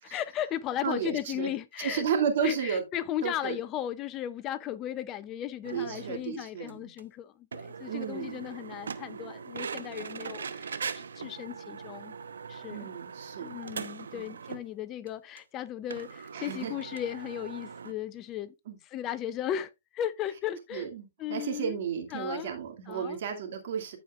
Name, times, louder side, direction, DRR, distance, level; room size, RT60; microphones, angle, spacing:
voice 1, 0.0-2.0 2.4-12.2 12.5-12.9 13.4-18.5 18.9-20.9 21.2-21.8 22.1-22.5 22.9-23.2, left 11 dB, 25° left, 0.5 m, -36 dB
voice 2, 0.8-1.5 1.8-2.8 3.2-3.6 5.7-6.9 7.9-8.4 12.7-13.6 14.1-14.3 16.3-16.7 18.7-18.8 20.7-24.0, right 7 dB, 55° right, 2.3 m, -33 dB
sound 1, 5.6-6.2 6.7-6.8 7.0-7.1 7.5-14.7 15.1-15.2 15.4-15.5 15.9-17.9, right 6 dB, 80° right, 0.9 m, -40 dB
14.5 x 5.0 x 2.4 m
hypercardioid pair, 135°, 0 cm